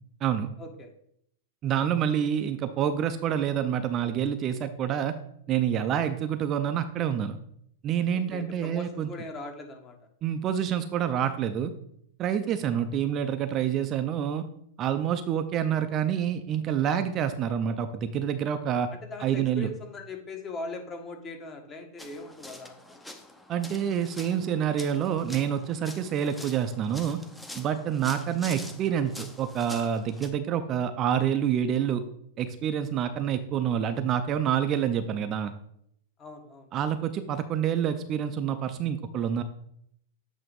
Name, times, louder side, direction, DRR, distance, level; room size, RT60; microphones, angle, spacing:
voice 1, 0.6-0.9 8.1-10.0 12.4-12.8 18.9-23.0 36.2-36.7, left 3 dB, 25° left, 3 dB, 1.4 m, -41 dB
voice 2, 1.6-5.2 5.5-7.4 7.8-9.1 10.2-11.7 12.2-14.4 14.8-18.9 19.2-19.7 23.5-27.2 27.6-32.0 32.4-35.5 36.7-39.4, right 9 dB, 35° right, 9 dB, 0.6 m, -27 dB
sound 1, 22.0-30.3, left 1 dB, 5° left, 0.8 m, -45 dB
8.2 x 3.0 x 5.2 m, 0.69 s
hypercardioid pair, 100°, 0 cm